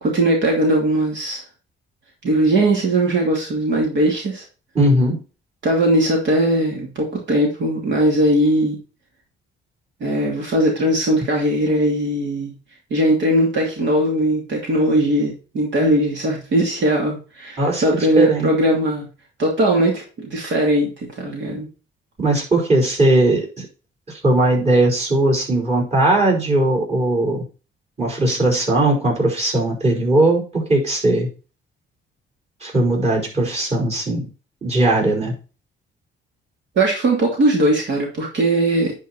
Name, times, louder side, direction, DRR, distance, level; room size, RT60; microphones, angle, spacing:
voice 1, 0.0-1.4 2.2-4.4 5.6-8.8 10.0-12.5 12.9-19.1 19.4-21.7 36.7-38.9, right 1 dB, 65° right, -1 dB, 2.8 m, -19 dB
voice 2, 4.7-5.2 17.6-17.8 18.2-18.5 22.2-23.7 24.1-27.4 28.0-31.3 32.6-34.2 34.6-35.3, right 1 dB, 30° right, -1 dB, 5.0 m, -18 dB
10.5 x 4.8 x 4.4 m, 0.34 s
cardioid pair, 90°, 20 cm